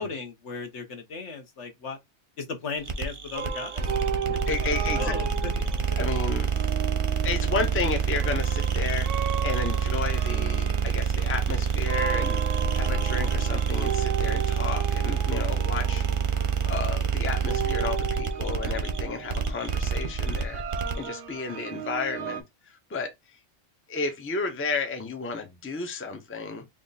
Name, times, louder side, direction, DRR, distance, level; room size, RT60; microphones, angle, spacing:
voice 1, 0.0-2.0 2.4-4.2 4.5-4.6 4.9-5.5 5.9-6.0 17.5-17.8, left 4 dB, 70° left, 1.3 m, -36 dB
sound 1, 2.8-21.1, right 6 dB, 35° right, 0.6 m, -27 dB
sound 2, 3.3-22.4, right 9 dB, 85° right, 1.0 m, -35 dB
voice 2, 4.5-5.1 5.5-5.7 6.0-6.5 7.2-16.1 16.6-23.4 23.9-26.6, left 4 dB, 15° left, 0.5 m, -32 dB
3.5 x 2.6 x 3.9 m
omnidirectional pair, 1.2 m